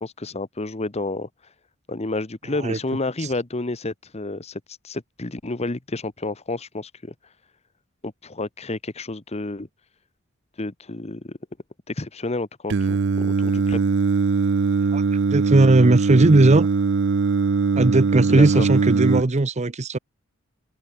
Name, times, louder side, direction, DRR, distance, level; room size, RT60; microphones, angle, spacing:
voice 1, 0.0-1.3 1.9-7.1 8.0-9.7 10.6-11.4 11.9-13.8 18.3-18.7, left 2 dB, 30° left, 1.1 m, -30 dB
Singing, 12.7-19.2, right 4 dB, 65° right, 0.5 m, -21 dB
voice 2, 14.9-16.7 17.8-20.0, right 2 dB, 35° right, 0.8 m, -18 dB
open air
head